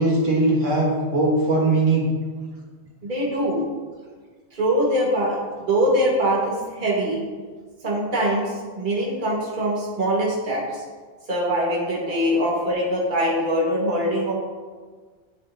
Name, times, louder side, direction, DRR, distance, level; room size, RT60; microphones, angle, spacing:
voice 1, 0.0-2.1 12.1-12.2, right 2 dB, 85° right, -4 dB, 1.7 m, -20 dB
voice 2, 3.0-3.6 4.5-7.2 7.8-10.8 11.3-14.3, equal, 40° right, -4 dB, 1.5 m, -23 dB
11.0 x 3.8 x 2.6 m, 1.5 s
omnidirectional pair, 1.3 m